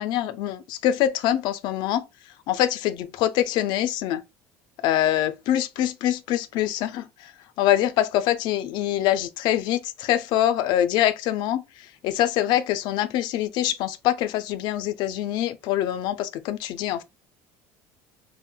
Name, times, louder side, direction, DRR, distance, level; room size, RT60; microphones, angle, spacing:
voice 1, 0.0-2.0 2.5-4.2 4.8-7.1 7.6-11.6 12.0-17.0, left 12 dB, 65° left, 0.4 m, -24 dB
3.7 x 2.0 x 2.2 m
supercardioid pair, 90°, 8 cm